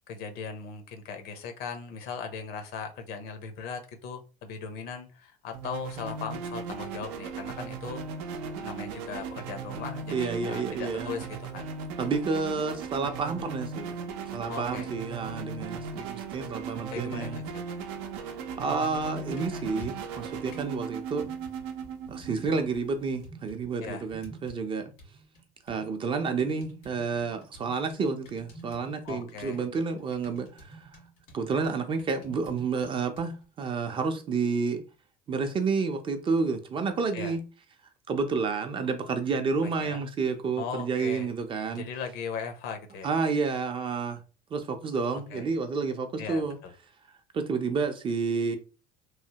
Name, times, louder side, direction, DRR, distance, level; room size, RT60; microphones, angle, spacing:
voice 1, 0.1-8.0 8.6-11.7 14.5-14.9 16.9-17.9 23.8-24.0 29.0-29.6 37.1-37.3 39.6-40.0 40.6-41.3 41.7-43.1 45.3-45.4 46.2-46.7, left 6 dB, 65° left, 0.7 m, -38 dB
sound 1, 5.5-23.3, right 5 dB, 80° right, 0.6 m, -38 dB
voice 2, 10.1-11.1 12.0-14.0 14.3-17.4 18.6-21.3 22.1-24.9 25.7-30.9 31.3-34.8 35.3-37.4 38.1-41.8 43.0-44.2 44.5-46.6 47.3-48.6, right 4 dB, 30° right, 0.5 m, -30 dB
sound 2, 19.0-20.7 21.2-22.8 23.2-24.7 25.0-33.5, right 1 dB, 85° left, 1.6 m, -50 dB
3.1 x 2.1 x 2.8 m
cardioid pair, 125°, 18 cm